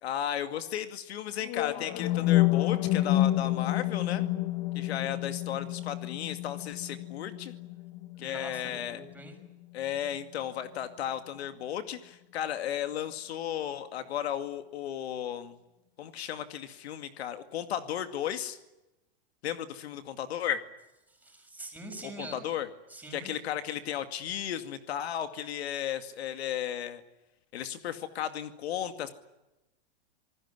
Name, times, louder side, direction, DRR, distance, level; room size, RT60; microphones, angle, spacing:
voice 1, 0.0-4.2 4.7-7.5 8.2-9.0 9.7-15.6 16.0-18.6 19.4-20.6 22.0-22.7 23.1-27.0 27.5-29.1, left 10 dB, 70° left, 9 dB, 2.3 m, -34 dB
sound 1, 1.4-9.5, left 15 dB, 35° left, 1.2 m, -29 dB
voice 2, 8.2-9.4 21.1-22.5 22.9-23.3, right 2 dB, 5° right, 4 dB, 6.2 m, -44 dB
27.5 x 19.5 x 9.7 m, 0.97 s
hypercardioid pair, 145°, 33 cm